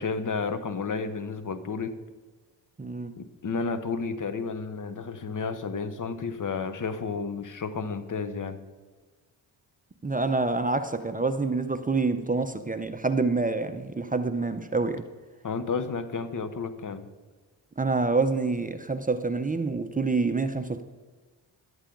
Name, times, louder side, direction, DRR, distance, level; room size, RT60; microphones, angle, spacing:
voice 1, 0.0-1.9 3.2-8.6 15.4-17.1, left 5 dB, 45° left, 1.0 m, -32 dB
voice 2, 2.8-3.1 10.0-15.1 17.8-20.8, right 3 dB, 20° right, 0.7 m, -27 dB
13.0 x 11.5 x 3.9 m
cardioid pair, 80°, 44 cm